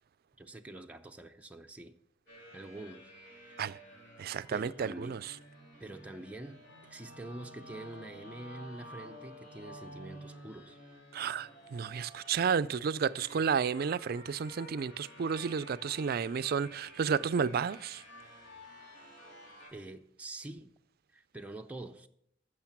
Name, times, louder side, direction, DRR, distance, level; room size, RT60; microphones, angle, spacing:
voice 1, 0.4-1.9 2.5-3.1 3.5-3.6 4.5-5.2 5.8-10.8 19.7-20.7 21.1-22.1, right 1 dB, 10° right, 0.5 m, -46 dB
sound 1, 2.3-19.7, equal, 70° left, 4.0 m, -52 dB
voice 2, 4.2-5.4 11.1-18.0, right 6 dB, 55° right, 0.4 m, -32 dB
14.5 x 6.5 x 5.9 m
head